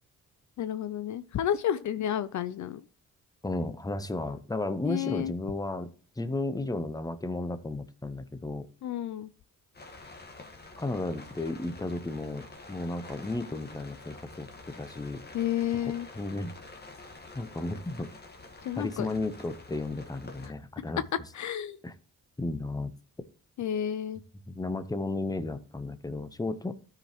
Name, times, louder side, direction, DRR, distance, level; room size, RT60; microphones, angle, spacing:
voice 1, 0.6-2.8 4.8-5.3 8.8-9.3 15.3-16.1 18.6-19.1 20.4-20.5 21.3-21.8 23.6-24.2, left 10 dB, 60° left, 0.5 m, -31 dB
voice 2, 3.4-8.7 10.8-15.2 15.9-16.6 17.3-18.1 18.8-21.0 21.8-21.9 22.4-22.9 24.5-26.7, left 2 dB, 10° left, 0.8 m, -34 dB
sound 1, 9.7-20.5, left 3 dB, 30° left, 1.5 m, -48 dB
13.0 x 5.0 x 3.0 m
cardioid pair, 60°, 32 cm